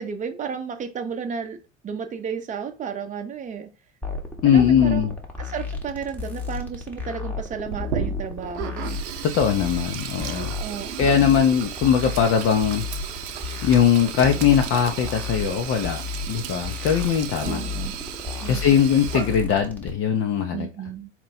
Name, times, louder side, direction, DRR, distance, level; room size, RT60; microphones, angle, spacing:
voice 1, 0.0-1.6 1.8-3.7 4.4-9.0 10.6-11.3 17.4-18.0 18.4-18.8 20.5-21.1, right 7 dB, 20° right, 0.7 m, -33 dB
sound 1, 4.0-19.9, left 4 dB, 5° left, 0.9 m, -33 dB
voice 2, 4.4-5.2 9.2-10.5 11.0-12.9 13.6-17.6 18.5-20.7, left 8 dB, 40° left, 0.6 m, -20 dB
Sink (filling or washing), 7.7-19.7, right 9 dB, 65° right, 0.7 m, -35 dB
4.3 x 2.2 x 4.1 m
hypercardioid pair, 90°, 36 cm